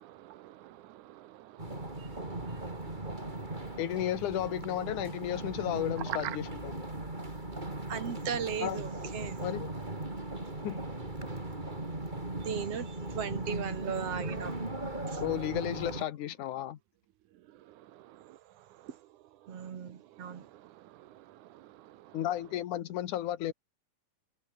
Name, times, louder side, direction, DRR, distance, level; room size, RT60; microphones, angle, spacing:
voice 1, 0.0-1.3 1.6-2.5 3.2-3.4, right 14 dB, 85° right, 2.4 m, -53 dB
sound 1, 1.6-16.0, right 2 dB, 15° right, 3.9 m, -38 dB
voice 2, 3.8-6.9 8.6-8.8 9.4-9.7 10.6-10.8 15.2-16.8 22.1-23.5, left 12 dB, 80° left, 2.8 m, -33 dB
voice 3, 7.9-9.4 12.4-14.5 15.1-15.2 19.5-20.5, right 7 dB, 55° right, 2.9 m, -37 dB
omnidirectional pair, 3.5 m